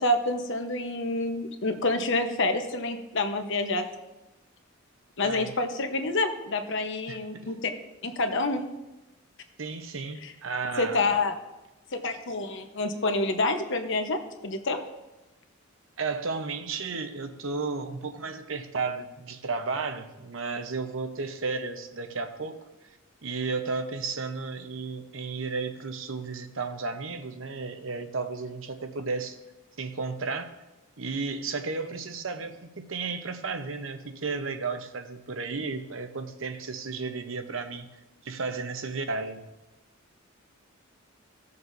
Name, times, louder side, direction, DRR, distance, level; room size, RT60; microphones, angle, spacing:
voice 1, 0.0-3.9 5.2-7.7 8.0-8.6 10.2-10.3 10.8-11.3 12.0-14.8, left 2 dB, 65° left, 6 dB, 1.0 m, -28 dB
voice 2, 5.2-5.5 7.1-7.5 9.6-11.0 16.0-22.6 23.2-29.4 29.8-30.4 31.0-37.9 38.2-39.4, right 4 dB, 70° right, 7 dB, 0.9 m, -33 dB
17.5 x 6.8 x 2.7 m, 1.0 s
head